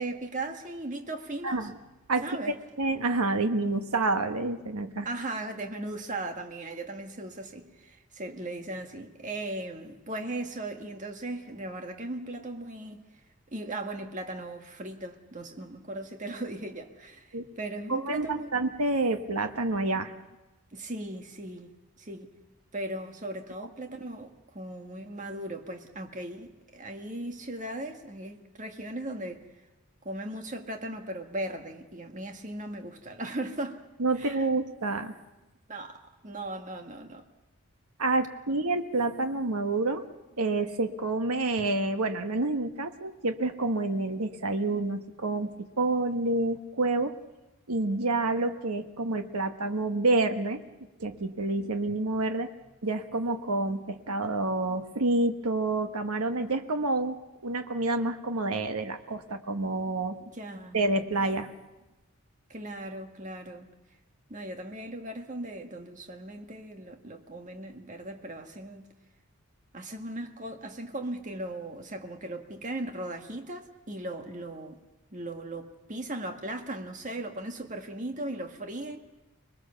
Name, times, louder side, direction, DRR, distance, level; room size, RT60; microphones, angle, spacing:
voice 1, 0.0-1.7 2.2-2.5 5.0-13.0 13.5-18.5 20.7-21.7 22.0-22.3 22.7-29.4 30.0-33.8 34.2-34.5 35.7-37.3 60.2-60.8 62.5-63.7 64.3-68.9 69.7-74.8 75.1-79.0, right 1 dB, 35° right, 1.6 m, -38 dB
voice 2, 1.4-1.7 2.1-5.1 17.3-17.5 17.9-20.1 34.0-35.1 38.0-40.0 40.4-47.2 47.7-50.6 51.0-52.5 52.8-57.2 57.4-60.2 60.7-61.5, right 2 dB, 85° right, 1.3 m, -28 dB
25.5 x 20.5 x 6.9 m
head